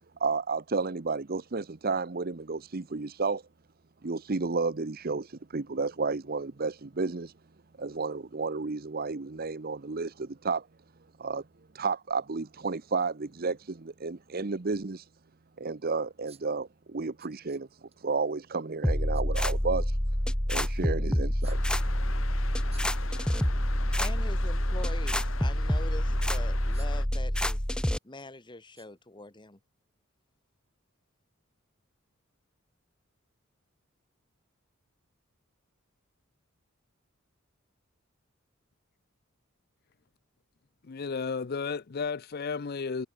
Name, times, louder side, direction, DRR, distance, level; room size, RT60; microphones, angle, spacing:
voice 1, 0.2-3.4 4.0-7.3 7.8-10.7 11.2-11.4 11.7-15.1 15.6-20.0 20.5-21.6, right 4 dB, 45° right, 0.8 m, -32 dB
sound 1, 14.3-14.4 15.0-15.1 16.3-16.6 17.2-18.0 19.1-19.4 21.4-21.9 22.7-23.5 23.8-24.0 24.4-25.1 25.8-25.9 26.7-27.1 27.4-28.3 28.8-28.9 29.3-29.4, right 9 dB, 30° right, 7.5 m, -58 dB
sound 2, 18.8-28.0, equal, 5° left, 0.6 m, -27 dB
sound 3, 21.4-27.1, left 4 dB, 70° left, 1.5 m, -42 dB
voice 2, 24.0-27.6 28.0-29.6, left 2 dB, 20° left, 1.5 m, -43 dB
voice 3, 40.8-43.1, left 5 dB, 45° left, 0.5 m, -33 dB
head